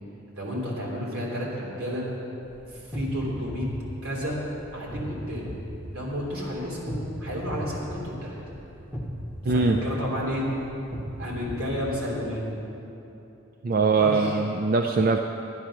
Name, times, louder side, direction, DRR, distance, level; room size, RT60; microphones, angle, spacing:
voice 1, 0.4-2.0 2.7-3.7 4.0-4.4 4.7-5.6 5.9-8.4 9.4-10.5 11.2-12.5 13.7-14.4, equal, 80° right, -4 dB, 3.4 m, -31 dB
sound 1, 2.4-12.4, equal, 10° right, 1.2 m, -37 dB
voice 2, 9.5-9.8 13.6-15.2, right 4 dB, 45° right, 4 dB, 0.4 m, -22 dB
11.5 x 10.5 x 6.1 m, 3.0 s
head